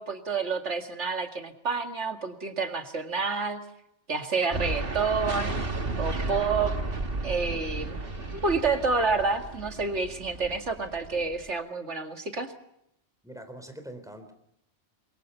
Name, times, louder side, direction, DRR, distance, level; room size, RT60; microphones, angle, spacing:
voice 1, 0.0-3.6 4.1-5.5 6.0-6.7 7.2-8.0 8.3-12.5, right 4 dB, 80° right, 5 dB, 2.5 m, -29 dB
sound 1, 4.5-11.5, right 2 dB, 55° right, 2.1 m, -33 dB
voice 2, 13.2-14.3, right 1 dB, 5° right, 6 dB, 3.8 m, -43 dB
28.0 x 22.5 x 5.6 m, 0.78 s
omnidirectional pair, 1.2 m